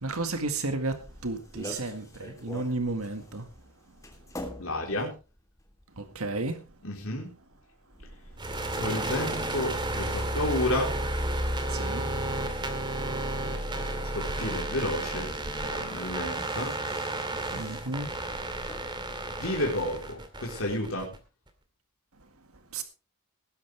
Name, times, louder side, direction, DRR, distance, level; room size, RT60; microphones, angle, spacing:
voice 1, 0.0-3.5 6.0-6.6 11.7-12.1 17.5-18.1 22.7-22.8, right 2 dB, 75° right, 1.8 m, -32 dB
sound 1, 0.7-19.8, left 1 dB, 15° left, 3.2 m, -49 dB
voice 2, 4.6-5.1 6.8-7.3 8.7-10.9 14.1-15.3 15.6-16.7 19.4-21.1, left 1 dB, 65° left, 3.9 m, -31 dB
sound 2, 8.4-21.2, right 1 dB, 20° right, 2.2 m, -32 dB
19.5 x 10.5 x 3.3 m
head